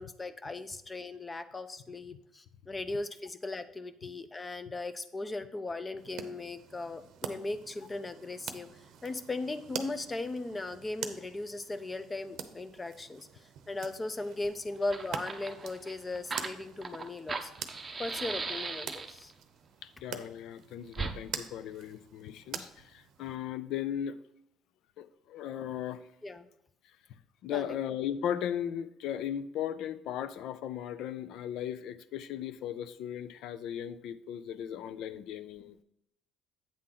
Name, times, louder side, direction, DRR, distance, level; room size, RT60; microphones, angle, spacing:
voice 1, 0.0-8.7 9.0-17.5 18.0-19.3 26.2-26.5 27.5-27.8, left 2 dB, 20° left, 11 dB, 0.5 m, -38 dB
sound 1, 6.0-23.4, right 8 dB, 65° right, 0.7 m, -46 dB
Fire, 14.4-14.5 14.8-19.3 20.9-21.2, right 4 dB, 25° right, 0.7 m, -38 dB
voice 2, 20.0-24.2 25.0-26.0 27.4-35.8, left 10 dB, 70° left, 14 dB, 0.5 m, -37 dB
8.6 x 3.8 x 5.7 m, 0.81 s
cardioid pair, 120°, 0 cm